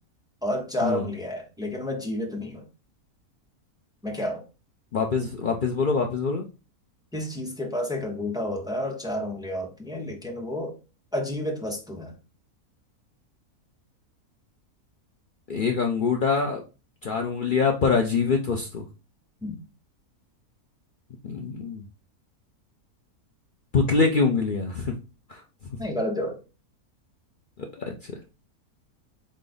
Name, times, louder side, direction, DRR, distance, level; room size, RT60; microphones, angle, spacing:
voice 1, 0.4-2.7 4.0-4.4 7.1-10.8 11.1-12.1 19.4-19.6 25.8-26.4, left 1 dB, 5° right, 0.6 m, -30 dB
voice 2, 4.9-6.5 15.5-16.6 17.0-18.8 21.2-21.8 23.7-24.9 25.3-25.4 27.8-28.2, left 5 dB, 70° left, 0.4 m, -24 dB
3.8 x 3.2 x 3.9 m
omnidirectional pair, 1.6 m